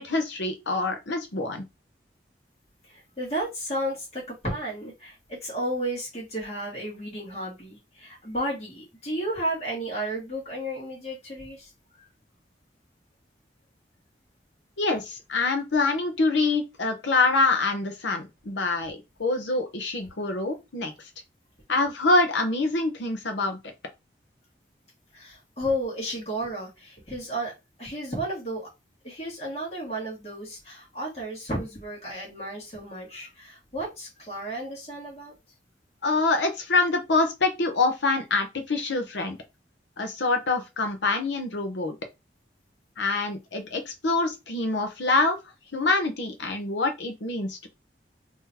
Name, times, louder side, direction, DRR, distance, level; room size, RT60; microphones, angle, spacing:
voice 1, 0.0-1.6 14.8-20.9 21.7-23.6 36.0-39.4 40.0-41.9 43.0-45.4 45.7-47.7, left 3 dB, 90° left, 0.9 m, -25 dB
voice 2, 2.9-11.7 12.0-12.1 25.1-27.5 27.8-28.7 29.0-35.3, right 1 dB, 35° left, 1.8 m, -33 dB
3.8 x 3.0 x 2.8 m
head